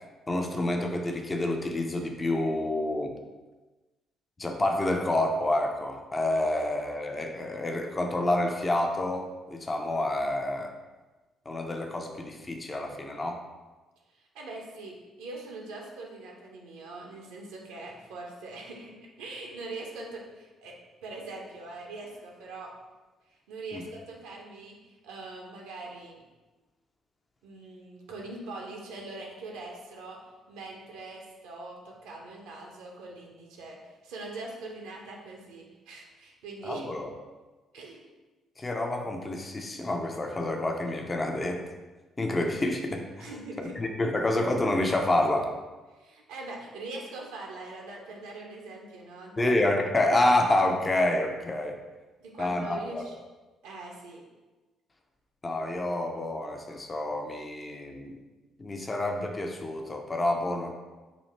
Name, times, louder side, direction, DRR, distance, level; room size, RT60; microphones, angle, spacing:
voice 1, 0.3-3.1 4.4-10.7 11.5-13.4 23.7-23.8 36.6-37.1 38.6-41.7 42.2-43.3 43.6-45.5 49.4-51.8 52.4-53.0 55.4-58.2 58.6-60.7, left 1 dB, 25° left, 3 dB, 0.6 m, -28 dB
voice 2, 14.1-22.7 23.3-26.2 27.4-30.2 30.5-36.9 37.7-38.0 43.2-43.7 45.9-49.5 52.2-53.1 53.6-54.2, right 2 dB, 65° right, -1 dB, 0.7 m, -42 dB
4.2 x 2.8 x 4.2 m, 1.2 s
figure-of-eight pair, 45°, 0 cm